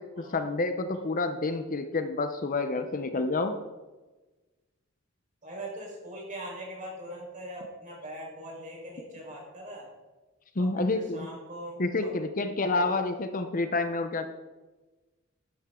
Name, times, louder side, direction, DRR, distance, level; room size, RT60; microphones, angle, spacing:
voice 1, 0.3-3.6 10.6-11.3 11.8-14.3, left 3 dB, 40° left, 8 dB, 0.7 m, -28 dB
voice 2, 5.4-9.9 10.6-12.1 12.7-12.9, right 1 dB, 40° right, -2 dB, 4.4 m, -41 dB
12.5 x 11.0 x 3.8 m, 1.2 s
head